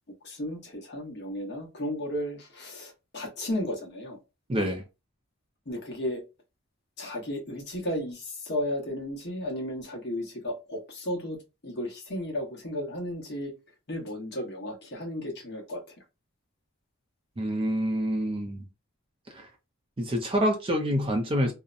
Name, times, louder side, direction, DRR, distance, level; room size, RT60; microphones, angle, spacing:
voice 1, 0.2-4.2 5.7-6.2 7.0-11.4 11.6-13.5 13.9-15.8, left 1 dB, 50° left, 0.9 m, -34 dB
voice 2, 4.5-4.8 17.4-18.6 19.3-19.5 20.0-21.5, equal, 25° right, 0.4 m, -27 dB
2.6 x 2.0 x 2.4 m
head